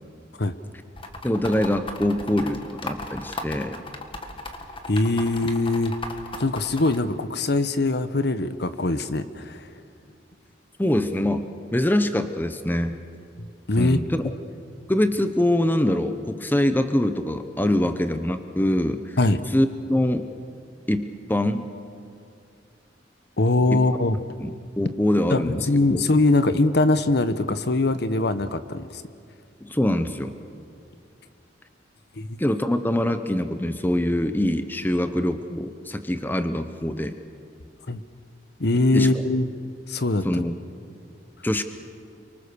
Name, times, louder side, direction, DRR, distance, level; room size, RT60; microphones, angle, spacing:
sound 1, 1.0-7.0, left 2 dB, 30° left, 1.8 m, -35 dB
voice 1, 1.2-3.8 10.8-11.4 11.7-13.0 13.8-14.2 14.9-19.0 19.5-20.3 20.9-21.7 23.7-23.8 24.4-26.1 29.6-30.3 32.4-37.1 38.9-39.1 40.2-40.5 41.4-41.6, left 1 dB, 10° left, 9 dB, 0.9 m, -24 dB
voice 2, 4.9-6.0 6.4-9.6 13.4-14.0 19.2-19.4 23.4-24.2 25.3-28.9 32.2-32.4 37.9-38.0 38.6-39.5 39.9-40.4, left 2 dB, 65° left, 12 dB, 1.0 m, -22 dB
30.0 x 24.0 x 6.8 m, 2.4 s
head